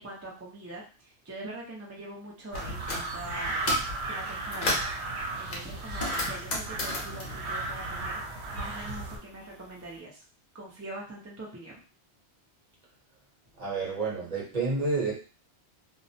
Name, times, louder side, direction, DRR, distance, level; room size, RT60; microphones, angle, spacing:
voice 1, 0.0-3.6 4.1-8.2 8.5-10.2 10.5-11.8, right 1 dB, 25° right, -3 dB, 0.3 m, -43 dB
sound 1, 2.5-3.0 3.4-3.9 4.3-5.0 5.5-8.4 8.7-9.8, left 1 dB, 45° left, 0.7 m, -34 dB
sound 2, 2.5-9.2, right 2 dB, 75° right, 0.9 m, -34 dB
voice 2, 13.6-15.1, right 3 dB, 40° right, -4 dB, 0.8 m, -29 dB
2.3 x 2.0 x 2.6 m, 0.36 s
omnidirectional pair, 1.1 m